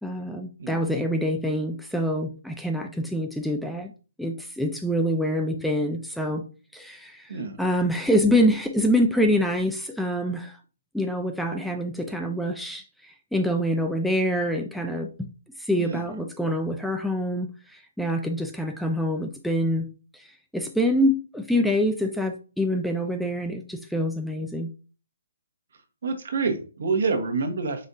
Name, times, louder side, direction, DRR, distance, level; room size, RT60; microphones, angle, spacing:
voice 1, 0.0-3.9 4.2-6.4 6.7-10.6 10.9-15.1 15.6-19.9 20.1-24.7, equal, ahead, 4 dB, 0.4 m, -26 dB
voice 2, 26.0-27.9, right 4 dB, 65° right, 6 dB, 1.1 m, -27 dB
5.3 x 3.4 x 2.7 m, 0.35 s
figure-of-eight pair, 140°, 0 cm